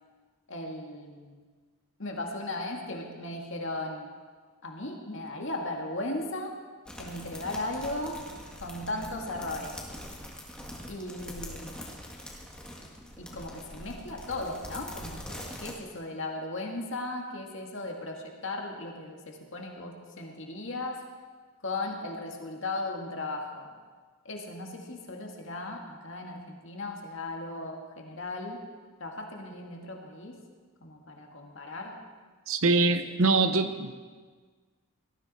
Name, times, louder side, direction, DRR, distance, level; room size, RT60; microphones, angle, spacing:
voice 1, 0.5-1.3 2.0-4.1 4.6-6.5 7.0-8.2 8.6-9.8 10.9-11.9 13.2-21.0 21.6-23.7 24.2-28.6 29.0-30.4 30.8-32.0, left 2 dB, 55° left, 1 dB, 2.1 m, -37 dB
sound 1, 6.9-15.7, equal, 5° left, 1.8 m, -43 dB
voice 2, 32.5-33.9, right 3 dB, 70° right, 9 dB, 0.9 m, -24 dB
18.5 x 13.5 x 4.3 m, 1.5 s
head